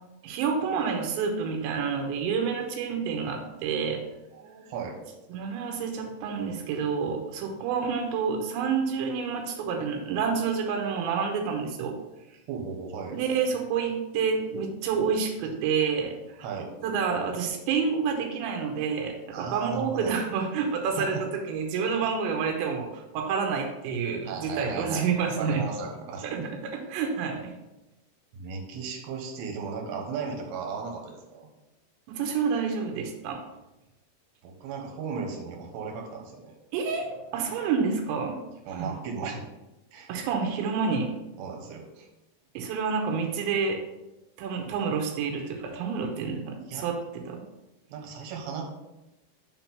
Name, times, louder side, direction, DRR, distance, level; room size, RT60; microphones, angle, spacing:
voice 1, 0.2-4.0 5.3-12.0 13.1-16.4 16.8-25.6 26.2-27.6 32.1-33.4 36.7-38.4 38.7-38.9 40.1-41.1 42.5-43.8 44.4-47.4, right 6 dB, 90° right, 2 dB, 3.1 m, -29 dB
voice 2, 4.3-4.9 12.5-13.2 16.4-16.7 19.3-20.2 21.0-21.2 24.2-25.1 25.4-26.5 28.3-31.5 34.4-36.5 38.7-39.4 39.9-40.1 41.4-42.1 46.6-46.9 47.9-48.6, right 5 dB, 70° right, 1 dB, 3.0 m, -36 dB
6.1 x 4.4 x 5.7 m, 0.98 s
omnidirectional pair, 5.0 m